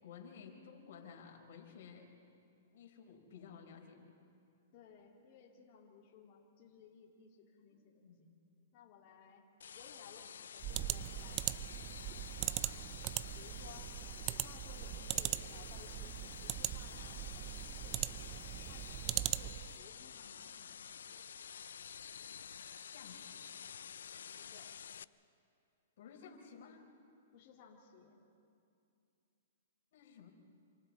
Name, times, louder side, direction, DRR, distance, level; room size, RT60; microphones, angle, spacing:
voice 1, 0.0-2.1 2.7-4.1 7.7-8.4 12.6-12.9 22.9-23.5 26.0-26.9 29.9-30.3, left 6 dB, 65° left, 1 dB, 4.4 m, -55 dB
voice 2, 4.7-8.1 8.7-9.5 9.7-11.6 12.4-13.0 13.4-13.9 14.2-17.5 17.8-21.2 24.4-24.7 27.3-28.2, left 6 dB, 45° left, -1 dB, 2.8 m, -59 dB
sound 1, 9.6-25.0, left 8 dB, 85° left, 0.4 m, -50 dB
sound 2, 10.6-19.8, right 16 dB, 35° right, 0.6 m, -40 dB
28.0 x 26.5 x 4.3 m, 2.5 s
hypercardioid pair, 140°, 0 cm